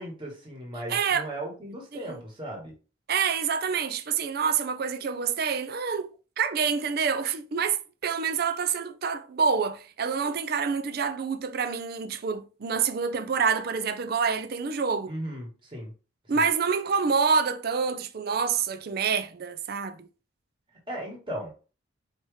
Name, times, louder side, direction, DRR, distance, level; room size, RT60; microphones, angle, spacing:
voice 1, 0.0-2.7 15.1-15.9 16.3-16.4 20.9-21.5, right 1 dB, 25° right, 1.3 m, -37 dB
voice 2, 0.9-1.3 1.9-2.2 3.1-6.1 6.4-15.1 16.3-20.1, right 6 dB, 50° right, 0.4 m, -27 dB
4.7 x 2.8 x 3.2 m
head